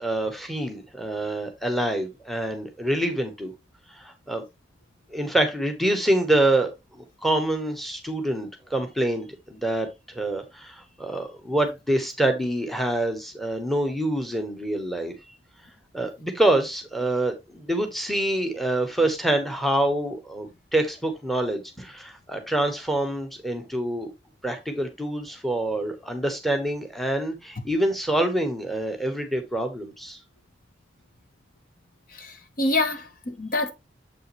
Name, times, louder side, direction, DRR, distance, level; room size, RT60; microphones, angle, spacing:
voice 1, 0.0-3.5 3.9-4.4 5.1-15.1 15.9-24.1 24.4-30.2, right 1 dB, ahead, 1.0 m, -26 dB
voice 2, 32.1-33.7, left 2 dB, 50° left, 1.0 m, -26 dB
7.5 x 5.6 x 3.0 m
head